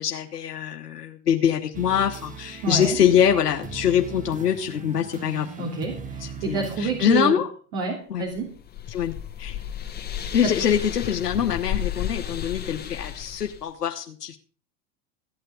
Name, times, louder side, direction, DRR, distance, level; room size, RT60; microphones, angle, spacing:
voice 1, 0.0-5.8 6.2-7.5 8.1-8.2 8.9-9.6 10.3-14.4, left 9 dB, 80° left, 4 dB, 1.2 m, -24 dB
sound 1, 1.7-7.2, right 6 dB, 15° right, 1.5 m, -39 dB
voice 2, 2.6-3.0 5.6-7.4 7.7-8.5 10.4-10.5, right 4 dB, 50° right, 0 dB, 3.2 m, -28 dB
sound 2, 8.3-13.7, left 10 dB, 20° left, 1.9 m, -33 dB
15.0 x 8.9 x 5.1 m, 0.42 s
hypercardioid pair, 95°, 46 cm